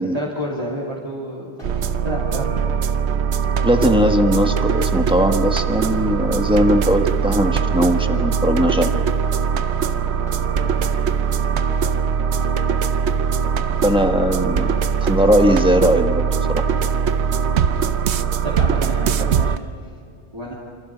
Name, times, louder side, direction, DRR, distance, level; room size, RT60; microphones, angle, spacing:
voice 1, 0.1-1.5 2.0-2.6 18.4-19.6 20.3-20.5, equal, 25° right, -6 dB, 3.3 m, -29 dB
sound 1, 1.6-1.9 3.8-4.1 5.9-6.2 8.1-8.4 10.3-10.6 12.4-12.7 14.6-14.9 16.7-17.0, left 1 dB, 65° left, 5.8 m, -40 dB
sound 2, 1.6-19.6, right 7 dB, 75° right, 1.0 m, -21 dB
voice 2, 3.6-9.0 13.8-14.7 15.0-16.6, equal, 5° right, 5 dB, 1.4 m, -19 dB
28.5 x 27.0 x 5.2 m, 2.5 s
omnidirectional pair, 1.1 m